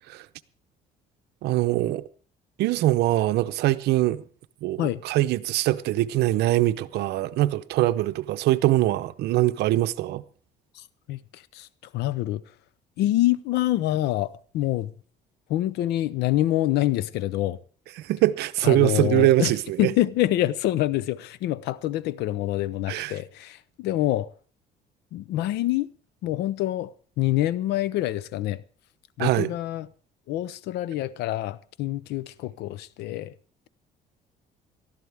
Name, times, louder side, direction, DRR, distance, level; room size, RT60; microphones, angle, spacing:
voice 1, 1.4-2.0 2.6-4.2 4.6-10.2 18.0-19.9 22.9-23.1 29.2-29.5, right 16 dB, 80° right, 0.7 m, -23 dB
voice 2, 10.8-11.7 11.9-12.4 13.0-14.9 15.5-17.6 18.6-19.5 19.8-24.3 25.1-25.9 26.2-26.9 27.2-28.6 29.2-29.9 30.3-33.3, left 14 dB, 80° left, 0.7 m, -26 dB
19.0 x 13.0 x 3.5 m
cardioid pair, 110°, 17 cm